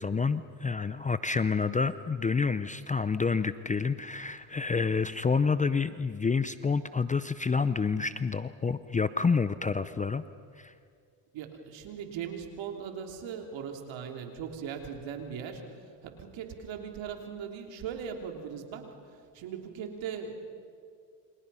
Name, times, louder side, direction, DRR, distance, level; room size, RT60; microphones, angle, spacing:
voice 1, 0.0-10.2 10.6-10.7, left 5 dB, 15° left, 13 dB, 0.6 m, -28 dB
voice 2, 11.3-15.6 16.0-18.9 19.3-20.4, right 7 dB, 65° right, 4 dB, 3.4 m, -39 dB
29.0 x 26.0 x 5.6 m, 2.2 s
supercardioid pair, 95°, 49 cm